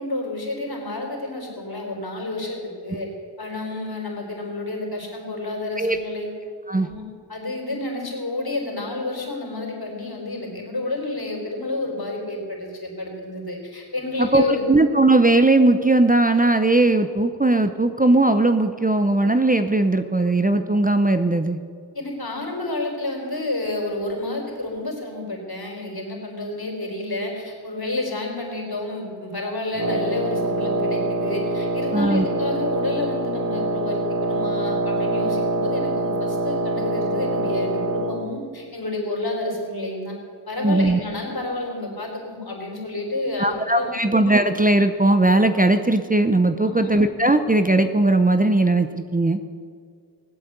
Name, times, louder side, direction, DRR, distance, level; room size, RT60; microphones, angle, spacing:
voice 1, 0.0-3.1 3.4-6.3 6.8-7.0 7.3-14.7 21.9-40.1 40.5-43.9 46.6-47.0, left 2 dB, 60° left, -1 dB, 4.5 m, -30 dB
voice 2, 14.2-21.6 31.9-32.3 40.6-41.0 43.4-49.5, right 2 dB, 20° right, 9 dB, 0.7 m, -18 dB
Wind instrument woodwind instrument, 29.8-38.3, right 2 dB, 40° right, 1.5 m, -25 dB
19.5 x 8.3 x 8.1 m, 2.2 s
wide cardioid pair, 55°, 42 cm